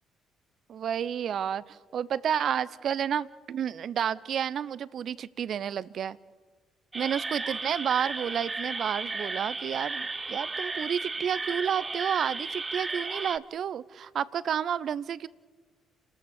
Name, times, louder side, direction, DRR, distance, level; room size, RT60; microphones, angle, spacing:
voice 1, 0.7-6.2 6.9-15.3, right 8 dB, 60° right, 19 dB, 0.6 m, -30 dB
sound 1, 6.9-13.4, right 3 dB, 30° right, 0.9 m, -34 dB
29.0 x 13.5 x 7.1 m, 1.5 s
hypercardioid pair, 50°, 0 cm